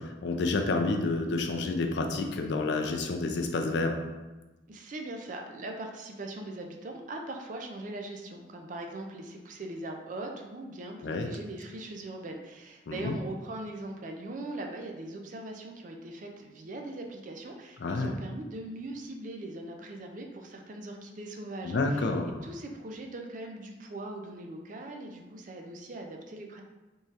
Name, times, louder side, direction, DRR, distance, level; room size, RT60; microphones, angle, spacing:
voice 1, 0.0-4.0 11.0-11.3 12.9-13.1 17.8-18.1 21.6-22.3, left 3 dB, 60° left, 4 dB, 0.4 m, -29 dB
voice 2, 4.7-22.1 22.4-26.6, right 2 dB, 40° right, 2 dB, 0.4 m, -40 dB
3.6 x 3.1 x 2.7 m, 1.1 s
head